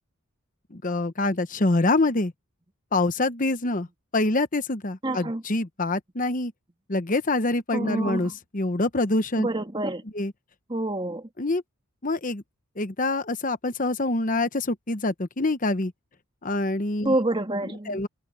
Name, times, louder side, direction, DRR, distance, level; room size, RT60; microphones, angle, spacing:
voice 1, 0.7-2.3 2.9-3.9 4.1-6.5 6.9-9.5 10.0-10.3 11.4-11.6 12.0-12.4 12.8-15.9 16.4-17.2 17.6-18.1, left 2 dB, 35° left, 1.0 m, -25 dB
voice 2, 5.0-5.4 7.7-8.3 9.4-10.0 10.7-11.3 17.0-18.0, right 1 dB, 20° right, 1.9 m, -27 dB
head